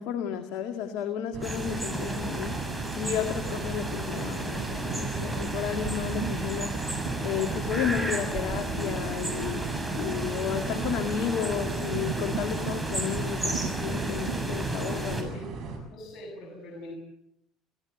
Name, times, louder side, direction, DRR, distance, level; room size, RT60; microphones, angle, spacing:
voice 1, 0.0-6.7 7.2-9.7 9.9-15.3, left 9 dB, 70° left, 6 dB, 2.0 m, -32 dB
sound 1, 1.3-15.8, right 4 dB, 60° right, 7.1 m, -38 dB
sound 2, 1.4-15.2, right 1 dB, 10° right, 6.5 m, -33 dB
sound 3, 2.4-14.3, right 7 dB, 75° right, 4.2 m, -41 dB
voice 2, 15.1-15.5 15.9-17.0, left 1 dB, 55° left, 0 dB, 7.6 m, -43 dB
26.5 x 15.5 x 8.0 m, 0.77 s
hypercardioid pair, 75°, 0 cm